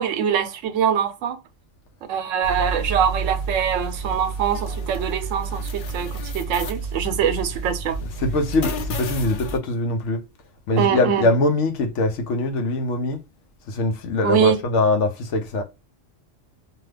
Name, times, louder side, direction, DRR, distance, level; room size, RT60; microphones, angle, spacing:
voice 1, 0.0-1.4 2.1-8.0 10.7-11.3 14.2-14.6, right 8 dB, 90° right, 1.0 m, -23 dB
sound 1, 2.4-9.6, right 3 dB, 55° left, 0.6 m, -30 dB
voice 2, 8.0-10.2 10.7-13.2 13.7-15.6, left 2 dB, 75° left, 1.0 m, -22 dB
2.8 x 2.3 x 3.2 m
omnidirectional pair, 1.3 m